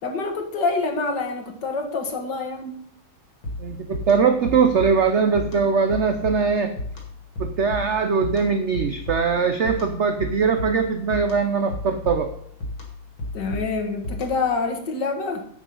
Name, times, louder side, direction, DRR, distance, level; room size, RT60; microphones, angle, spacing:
voice 1, 0.0-2.8 13.3-15.5, left 4 dB, 60° left, 4 dB, 2.2 m, -26 dB
sound 1, 3.4-14.6, left 2 dB, 85° left, 3.1 m, -34 dB
voice 2, 3.6-6.7 7.4-12.3, right 5 dB, 55° right, 7 dB, 0.8 m, -21 dB
9.2 x 8.0 x 5.5 m, 0.68 s
omnidirectional pair, 2.1 m